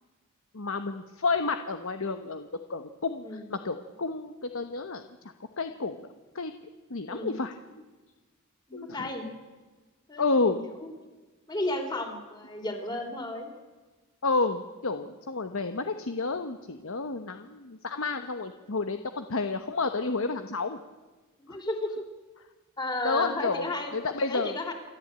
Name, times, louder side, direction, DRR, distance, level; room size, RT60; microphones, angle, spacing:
voice 1, 0.5-5.0 5.6-6.0 6.3-6.5 6.9-7.5 8.7-9.1 10.2-10.6 14.2-20.8 21.5-21.6 23.0-23.7 23.9-24.5, left 3 dB, 65° left, 8 dB, 1.1 m, -30 dB
voice 2, 3.2-3.5 7.1-7.3 8.7-9.3 10.1-10.9 11.5-13.5 21.4-22.0 22.8-23.9 24.3-24.7, left 2 dB, 20° left, 4 dB, 3.5 m, -33 dB
28.0 x 13.0 x 8.8 m, 1.3 s
head